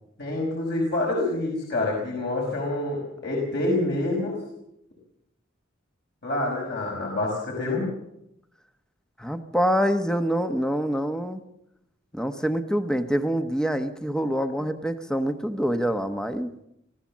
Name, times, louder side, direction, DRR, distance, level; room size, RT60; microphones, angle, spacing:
voice 1, 0.2-4.4 6.2-7.9, left 2 dB, 60° left, -1 dB, 5.3 m, -27 dB
voice 2, 9.2-11.4 12.1-16.5, equal, 5° left, 8 dB, 1.1 m, -26 dB
25.0 x 15.5 x 7.4 m, 0.81 s
head